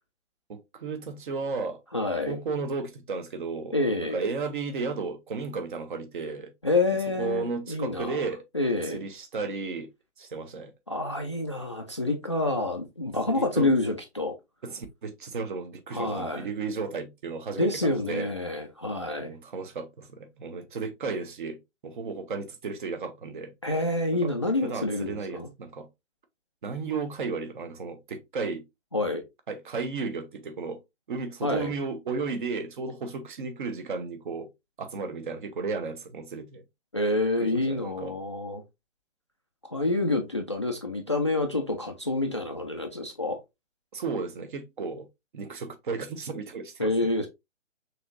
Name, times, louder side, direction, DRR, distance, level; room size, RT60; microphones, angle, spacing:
voice 1, 0.5-1.8 2.3-3.8 4.1-6.5 7.2-8.4 8.9-9.9 10.2-10.7 13.3-13.7 14.6-18.3 19.2-23.5 24.2-24.3 24.6-25.9 26.6-28.6 29.5-30.8 31.1-34.5 34.8-36.6 37.4-38.2 43.9-45.1 45.3-46.9, right 4 dB, 45° right, 1.0 m, -34 dB
voice 2, 1.9-2.4 3.7-4.2 6.6-8.3 8.5-9.0 10.9-14.4 15.9-16.5 17.6-19.3 23.6-25.5 28.9-29.2 31.4-31.7 36.9-38.6 39.6-43.4 46.8-47.3, left 2 dB, 25° left, 0.3 m, -27 dB
5.9 x 3.0 x 2.5 m
figure-of-eight pair, 135°, 36 cm